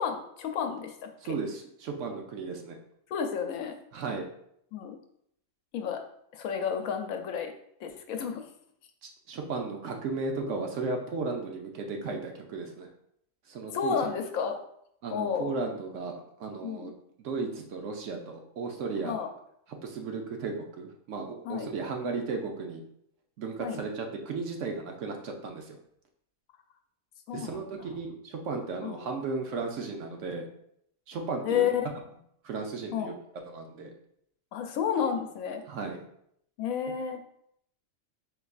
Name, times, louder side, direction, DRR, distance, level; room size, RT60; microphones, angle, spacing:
voice 1, 0.0-1.4 3.1-3.8 4.7-5.0 5.7-6.0 6.3-7.5 7.8-8.4 13.7-14.6 15.1-15.5 16.6-16.9 19.0-19.3 21.4-21.7 23.6-23.8 27.3-27.9 28.8-29.1 31.4-31.9 32.9-33.1 34.5-35.6 36.6-37.2, left 7 dB, 80° left, 5 dB, 1.0 m, -31 dB
voice 2, 1.2-2.8 3.9-4.3 9.3-12.9 13.5-14.1 15.0-16.9 17.2-19.2 19.8-22.8 23.4-25.8 27.3-30.5 31.1-31.7 32.4-33.1 33.5-33.9 35.7-36.0, right 4 dB, 70° right, 3 dB, 0.9 m, -35 dB
4.4 x 3.9 x 2.4 m, 0.71 s
omnidirectional pair, 1.4 m